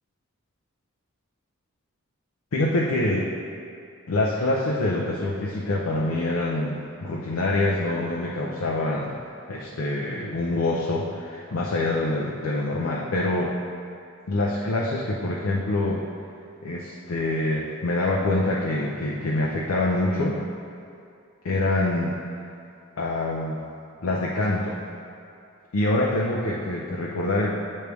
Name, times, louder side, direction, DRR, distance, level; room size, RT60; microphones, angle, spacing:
voice 1, 2.5-3.3 4.1-9.2 9.5-13.5 14.3-16.0 16.6-20.4 21.4-22.1 23.0-23.6 24.0-24.8 25.7-27.5, left 2 dB, 70° left, -3 dB, 0.5 m, -25 dB
9.1 x 3.2 x 3.4 m, 2.4 s
head